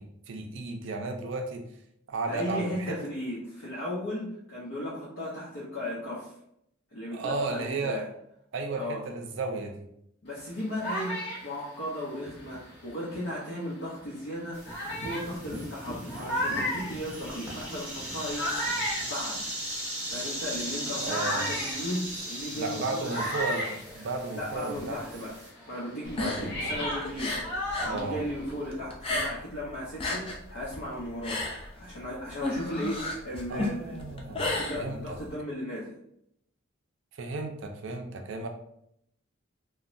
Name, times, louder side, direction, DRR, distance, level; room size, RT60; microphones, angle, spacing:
voice 1, 0.0-1.6 2.1-3.0 7.1-8.0 8.5-9.9 21.0-21.5 22.5-25.0 26.1-26.7 27.8-28.2 33.5-34.4 34.7-35.2 37.2-38.5, right 3 dB, 60° right, 4 dB, 0.4 m, -34 dB
voice 2, 2.3-6.3 6.9-8.1 8.7-9.0 10.2-11.2 11.4-14.6 15.0-19.5 20.1-23.3 24.3-25.3 25.7-27.4 27.8-36.0, equal, 80° left, -7 dB, 0.7 m, -36 dB
sound 1, 10.3-13.4 14.0-14.1 14.6-24.7 25.0-28.7, equal, 50° left, 0.7 m, -35 dB
sound 2, 14.5-25.5, right 1 dB, 10° right, 0.7 m, -38 dB
sound 3, 26.0-28.0 28.3-29.6 29.9-35.3, left 2 dB, 25° left, 0.3 m, -33 dB
3.0 x 2.1 x 2.5 m, 0.74 s
head